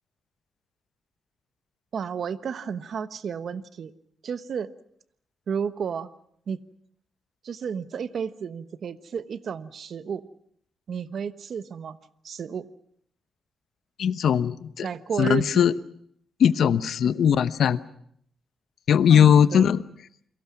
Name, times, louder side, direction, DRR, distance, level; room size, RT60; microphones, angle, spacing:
voice 1, 1.9-3.9 4.2-4.7 5.5-6.1 6.5-6.6 7.4-10.3 10.9-12.0 12.2-12.7 14.8-15.7 19.1-19.7, right 7 dB, 60° right, 13 dB, 1.2 m, -32 dB
voice 2, 14.0-14.9 15.2-15.7 16.4-17.8 18.9-19.8, left 8 dB, 70° left, 14 dB, 1.0 m, -19 dB
29.0 x 23.0 x 6.0 m, 0.67 s
cardioid pair, 110°, 0 cm